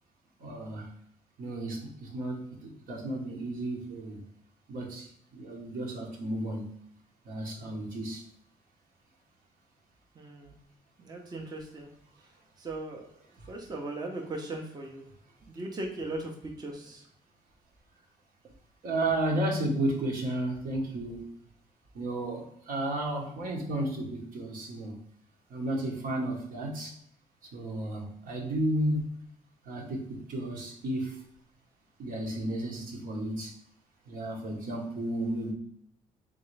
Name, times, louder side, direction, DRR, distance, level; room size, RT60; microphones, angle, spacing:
voice 1, 0.4-0.9 1.4-4.2 4.7-6.6 7.2-8.2 18.8-21.3 21.9-24.9 25.5-27.0 27.5-29.1 29.7-31.2 32.0-33.5 34.1-35.5, right 1 dB, 70° right, 1.1 m, -33 dB
voice 2, 10.2-10.5 11.0-11.9 12.6-13.1 13.5-15.1 15.5-17.0, right 2 dB, 25° right, 0.7 m, -38 dB
3.9 x 3.5 x 3.2 m
cardioid pair, 125°, 15 cm